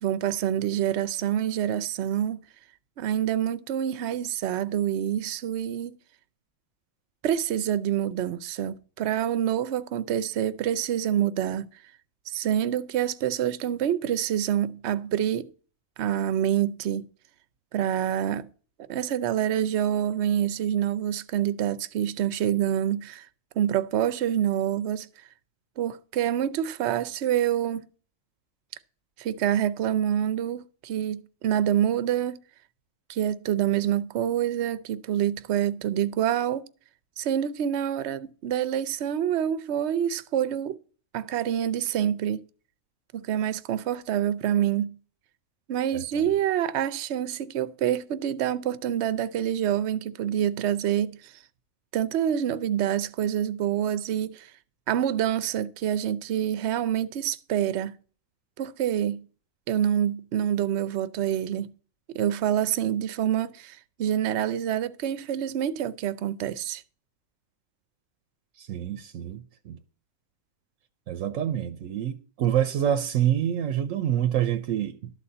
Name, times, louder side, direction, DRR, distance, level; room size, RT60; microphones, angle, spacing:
voice 1, 0.0-2.4 3.0-6.0 7.2-11.7 12.3-15.5 16.0-17.1 17.7-18.5 18.9-23.2 23.6-25.1 25.8-27.8 29.2-32.4 33.1-36.7 37.2-40.8 41.1-42.4 43.1-45.0 45.7-51.3 51.9-54.5 54.9-58.0 58.6-59.2 59.7-61.7 62.1-66.8, right 10 dB, 65° right, 0.9 m, -26 dB
voice 2, 45.9-46.2 68.6-69.8 71.1-75.1, right 10 dB, 85° right, 1.1 m, -27 dB
12.5 x 4.2 x 7.7 m
omnidirectional pair, 1.3 m